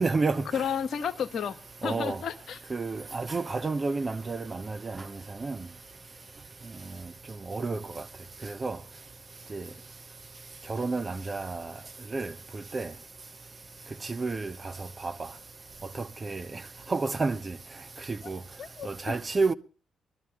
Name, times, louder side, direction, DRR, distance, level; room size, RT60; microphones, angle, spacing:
voice 1, 0.0-0.4 1.8-2.2 2.7-4.4 5.4-5.5 7.5-7.8 8.6-8.8 9.5-9.6 10.7-11.6 12.1-12.3 12.7-12.9 14.2-14.5 16.3-16.4 16.9-17.4 18.3-18.4 19.1-19.5, right 3 dB, 35° right, 1.0 m, -28 dB
voice 2, 0.5-2.6 18.2-18.3 18.6-19.1, left 7 dB, 60° left, 0.9 m, -32 dB
21.0 x 13.0 x 3.6 m
hypercardioid pair, 45°, 0 cm